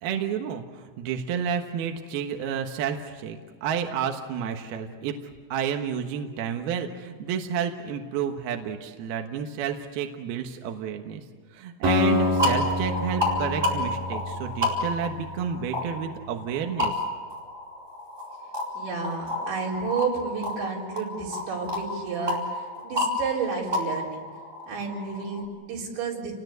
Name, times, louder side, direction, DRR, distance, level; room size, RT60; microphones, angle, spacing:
voice 1, 0.0-5.2 5.5-11.2 11.5-17.0, right 7 dB, 65° right, 4 dB, 3.0 m, -30 dB
Acoustic guitar, 11.8-15.9, left 2 dB, 50° right, 5.4 m, -28 dB
sound 1, 12.1-25.4, left 1 dB, 5° right, 3.8 m, -31 dB
voice 2, 18.8-24.2 24.7-26.3, right 5 dB, 85° right, -2 dB, 6.7 m, -31 dB
29.5 x 20.5 x 8.1 m, 1.5 s
omnidirectional pair, 5.1 m